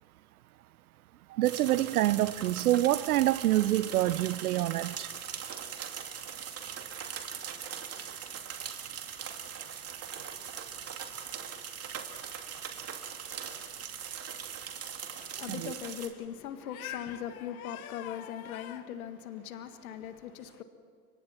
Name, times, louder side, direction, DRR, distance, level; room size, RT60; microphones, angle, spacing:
sound 1, 1.4-16.1, right 8 dB, 35° right, 2.6 m, -40 dB
voice 1, 1.4-5.1 15.5-15.7, right 15 dB, 80° right, 0.8 m, -26 dB
voice 2, 15.1-20.6, left 9 dB, 75° left, 1.9 m, -39 dB
29.5 x 24.5 x 4.4 m
hypercardioid pair, 95°, 43 cm